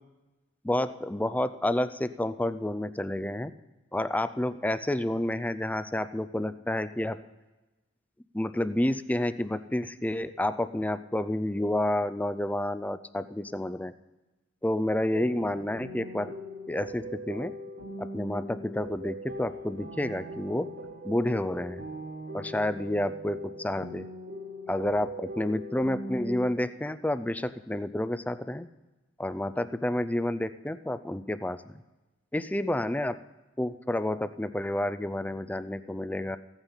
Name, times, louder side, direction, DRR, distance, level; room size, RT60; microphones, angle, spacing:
voice 1, 0.6-3.5 3.9-7.2 8.3-13.9 14.6-16.3 16.7-17.5 18.0-20.7 21.0-21.8 22.3-24.1 24.7-28.7 29.2-31.6 32.3-33.2 33.6-36.4, left 1 dB, 10° left, 13 dB, 0.4 m, -29 dB
sound 1, 15.1-26.4, right 1 dB, 60° right, 2.3 m, -40 dB
15.0 x 9.0 x 5.6 m, 1.1 s
head